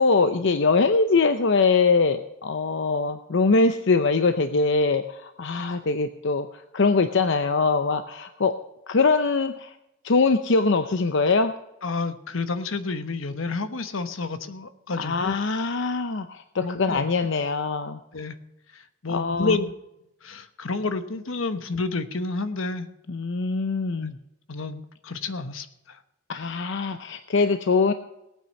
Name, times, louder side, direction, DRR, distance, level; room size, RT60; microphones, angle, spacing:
voice 1, 0.0-8.6 8.9-9.7 10.0-11.5 15.0-18.0 19.1-19.5 23.1-24.2 26.3-27.9, left 4 dB, 65° left, 9 dB, 0.7 m, -22 dB
voice 2, 11.8-15.3 16.6-17.1 18.1-18.4 18.7-19.7 20.2-22.9 24.0-24.1 24.5-26.0, left 3 dB, 80° left, 10 dB, 1.1 m, -30 dB
18.0 x 9.1 x 5.4 m, 0.87 s
head